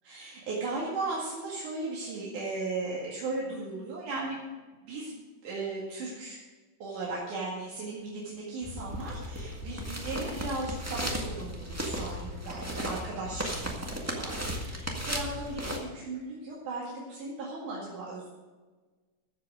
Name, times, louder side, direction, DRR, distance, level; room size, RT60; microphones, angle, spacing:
voice 1, 0.0-4.4 4.9-5.1 5.4-6.4 6.8-18.3, right 3 dB, 70° right, -6 dB, 3.6 m, -36 dB
sound 1, 8.6-15.8, equal, 20° right, 0.4 m, -35 dB
14.0 x 8.0 x 6.2 m, 1.3 s
omnidirectional pair, 3.7 m